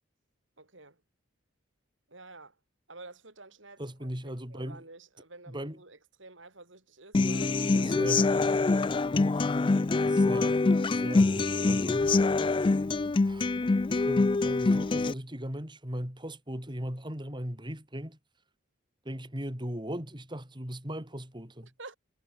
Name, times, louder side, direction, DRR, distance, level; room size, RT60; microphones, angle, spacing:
voice 1, 0.6-1.0 2.1-2.6 2.9-4.1 4.5-8.1 8.9-9.2 21.8-22.0, right 3 dB, 65° right, 4.9 m, -50 dB
voice 2, 3.8-4.8 5.5-5.8 7.8-8.2 10.1-10.6 10.9-12.1 13.2-13.5 13.9-18.2 19.0-21.7, equal, 25° right, 5.0 m, -38 dB
Human voice / Acoustic guitar, 7.1-15.1, left 3 dB, 25° left, 0.3 m, -25 dB
head